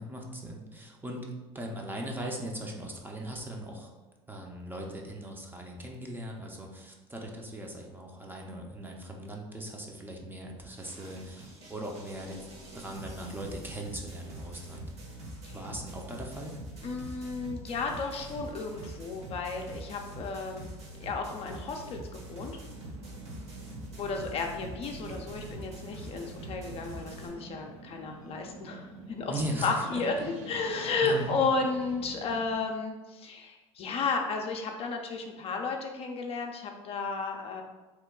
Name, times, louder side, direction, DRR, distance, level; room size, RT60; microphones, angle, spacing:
voice 1, 0.0-3.9 4.3-12.5 12.7-14.9 15.5-16.6 29.3-30.0 31.0-31.4, right 1 dB, 15° right, 0 dB, 0.6 m, -39 dB
sound 1, 10.7-27.3, right 1 dB, 45° right, 1.1 m, -44 dB
voice 2, 16.8-20.7 21.0-22.6 24.0-29.3 29.6-37.6, left 4 dB, 40° left, 2 dB, 0.5 m, -33 dB
sound 2, 22.7-32.5, right 3 dB, 70° right, 0.5 m, -48 dB
3.0 x 2.2 x 3.6 m, 1.2 s
hypercardioid pair, 80°, 15 cm